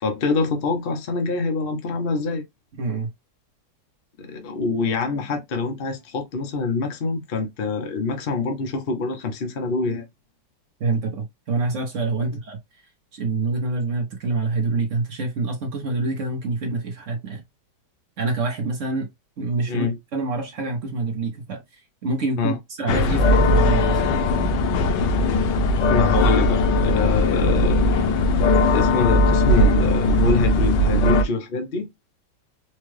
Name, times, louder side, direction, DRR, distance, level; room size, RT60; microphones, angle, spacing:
voice 1, 0.0-2.4 4.2-10.1 19.7-20.0 22.4-22.6 25.8-27.8 28.7-31.9, left 4 dB, 40° left, 0.9 m, -25 dB
voice 2, 2.8-3.1 10.8-12.6 13.1-17.4 18.2-19.1 19.4-24.0, right 3 dB, 50° right, 1.1 m, -26 dB
sound 1, 22.9-31.2, left 2 dB, 85° left, 1.4 m, -19 dB
4.4 x 2.4 x 3.2 m
omnidirectional pair, 1.9 m